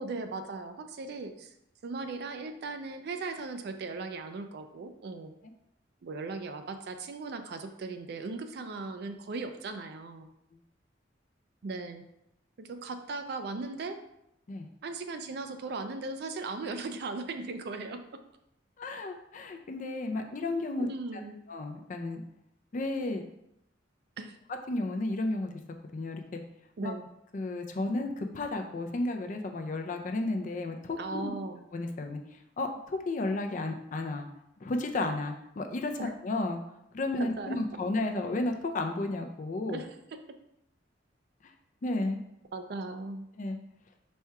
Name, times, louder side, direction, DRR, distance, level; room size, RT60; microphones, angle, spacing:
voice 1, 0.0-1.5 1.8-5.3 6.0-10.3 11.6-12.0 12.6-14.0 14.8-18.0 20.8-21.4 24.2-24.4 26.8-27.1 31.0-31.6 36.0-36.1 37.2-37.6 39.7-39.9 42.5-43.3, right 3 dB, 55° right, 7 dB, 0.4 m, -38 dB
voice 2, 18.8-20.9 21.5-22.2 22.7-23.2 24.7-25.5 25.9-26.4 26.8-26.9 27.3-31.3 31.7-32.2 32.6-34.3 34.6-35.9 36.2-36.6 36.9-39.8 41.8-42.2 43.4-43.6, left 2 dB, 40° left, 5 dB, 0.4 m, -32 dB
4.2 x 2.3 x 4.6 m, 0.80 s
head